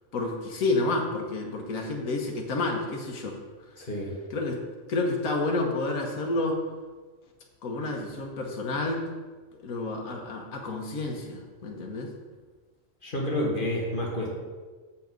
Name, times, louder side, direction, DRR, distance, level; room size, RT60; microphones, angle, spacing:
voice 1, 0.1-3.4 4.3-4.6 4.9-6.6 7.6-9.0 9.6-12.1, left 2 dB, 85° left, 0 dB, 1.4 m, -29 dB
voice 2, 3.8-4.1 13.0-14.3, left 1 dB, 40° left, -2 dB, 1.7 m, -29 dB
7.2 x 5.8 x 5.1 m, 1.4 s
omnidirectional pair, 1.4 m